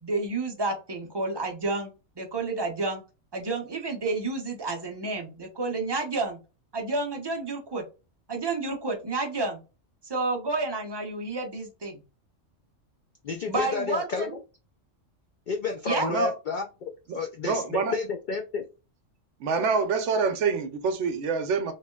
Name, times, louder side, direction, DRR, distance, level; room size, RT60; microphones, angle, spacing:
voice 1, 0.0-3.0 3.3-6.4 6.7-7.8 8.3-9.6 10.0-12.0 13.5-14.3 15.9-16.1, right 3 dB, 30° right, 0.5 m, -30 dB
voice 2, 13.2-14.4 15.5-18.6, left 5 dB, 75° left, 0.4 m, -31 dB
voice 3, 16.0-16.3 17.1-18.0 19.4-21.7, right 4 dB, 70° right, 0.9 m, -26 dB
3.1 x 2.7 x 2.2 m
omnidirectional pair, 1.3 m